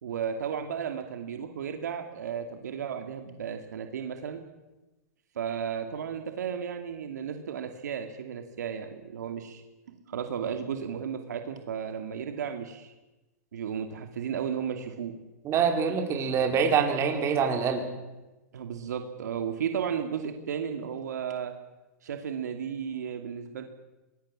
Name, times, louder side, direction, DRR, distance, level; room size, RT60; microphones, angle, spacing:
voice 1, 0.0-4.4 5.3-12.9 13.5-15.1 18.5-21.5 22.0-23.6, right 7 dB, 80° right, 6 dB, 2.5 m, -34 dB
voice 2, 15.4-17.9, right 6 dB, 30° right, 4 dB, 4.4 m, -25 dB
24.0 x 20.5 x 7.5 m, 1.1 s
hypercardioid pair, 125°, 9 cm